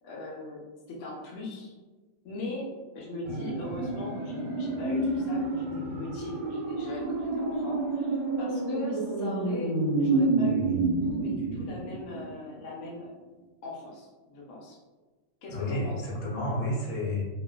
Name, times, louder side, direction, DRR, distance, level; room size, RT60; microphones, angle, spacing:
voice 1, 0.0-0.6 0.9-1.7 2.2-2.7 2.9-9.7 10.0-13.1 13.6-14.8 15.4-16.2, left 2 dB, 80° left, -4 dB, 0.7 m, -40 dB
sound 1, 3.2-12.4 12.7-12.8, right 2 dB, 70° right, 1.1 m, -29 dB
voice 2, 15.5-17.3, left 1 dB, 60° left, -4 dB, 1.0 m, -30 dB
2.8 x 2.5 x 2.2 m, 1.3 s
omnidirectional pair, 2.1 m